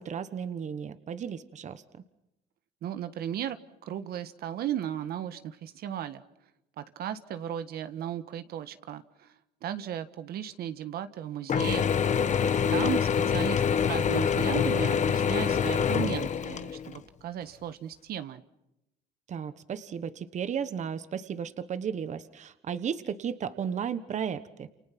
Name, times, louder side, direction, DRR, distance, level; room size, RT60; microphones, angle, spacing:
voice 1, 0.0-2.0 12.4-12.9 19.3-24.7, right 7 dB, 45° right, 12 dB, 1.3 m, -34 dB
voice 2, 2.8-3.6 3.8-6.2 6.8-9.3 9.6-11.9 12.7-18.4, right 10 dB, 65° right, 11 dB, 1.5 m, -35 dB
Mechanisms / Drill, 11.5-17.0, left 7 dB, 45° left, 1.3 m, -26 dB
29.0 x 29.0 x 6.0 m, 0.87 s
cardioid pair, 110°, 17 cm